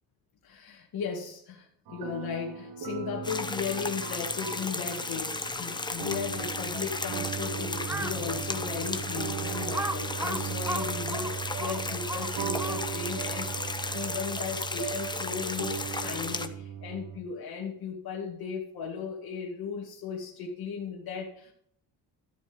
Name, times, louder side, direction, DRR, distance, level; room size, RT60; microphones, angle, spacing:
voice 1, 0.4-21.5, left 6 dB, 75° left, -2 dB, 2.3 m, -36 dB
sound 1, 1.9-17.2, right 8 dB, 80° right, 1.5 m, -38 dB
sound 2, 3.2-16.5, left 3 dB, 10° left, 0.9 m, -35 dB
Crow, 7.8-8.3 8.8-8.9 9.7-13.1, right 2 dB, 5° right, 0.4 m, -35 dB
13.5 x 8.0 x 5.3 m, 0.67 s
cardioid pair, 125°, 37 cm